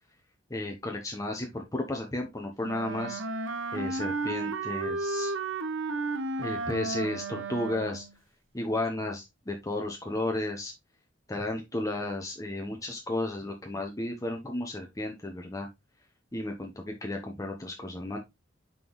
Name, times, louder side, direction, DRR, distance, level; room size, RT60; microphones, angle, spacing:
voice 1, 0.5-3.2 3.7-5.3 6.4-8.0 8.5-10.7 11.3-15.7 16.3-18.2, left 1 dB, 15° left, 2 dB, 0.8 m, -33 dB
Wind instrument woodwind instrument, 2.6-8.2, right 3 dB, 85° right, 0.9 m, -33 dB
5.9 x 5.4 x 3.0 m, 0.21 s
head